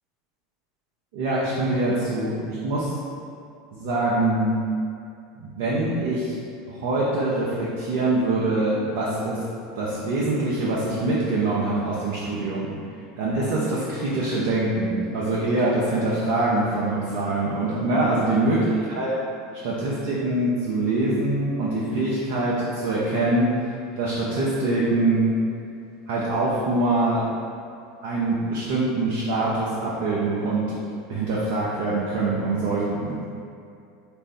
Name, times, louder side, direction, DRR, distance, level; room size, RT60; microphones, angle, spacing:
voice 1, 1.1-2.9 3.7-4.6 5.4-6.4 6.7-9.4 9.7-12.7 13.2-19.1 19.6-25.3 26.1-27.3 28.0-30.7 31.1-33.2, right 2 dB, 55° right, -6 dB, 0.6 m, -24 dB
4.2 x 2.5 x 3.4 m, 2.4 s
figure-of-eight pair, 75°, 0 cm